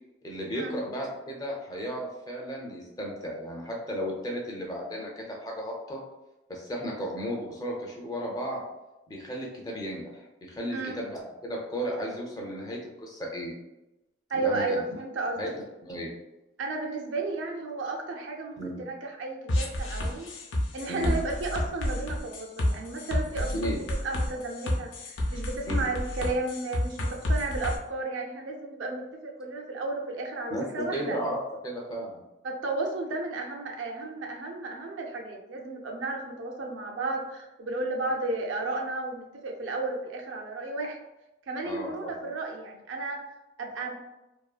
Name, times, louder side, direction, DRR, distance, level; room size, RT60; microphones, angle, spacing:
voice 1, 0.2-6.0 6.5-8.6 9.1-13.5 14.3-15.0 15.4-15.5 15.8-16.1 18.6-18.9 20.9-21.2 23.5-23.8 25.7-25.8 30.5-30.7 30.9-31.4 31.6-32.2 41.6-42.1, equal, 20° left, -2 dB, 0.4 m, -34 dB
voice 2, 14.3-15.4 16.6-20.3 20.7-23.5 24.0-31.2 32.4-41.0 41.5-43.2 43.6-43.9, right 2 dB, 85° right, 2 dB, 0.4 m, -33 dB
sound 1, 19.5-27.8, left 1 dB, 80° left, 0.5 m, -29 dB
2.6 x 2.3 x 2.3 m, 0.96 s
head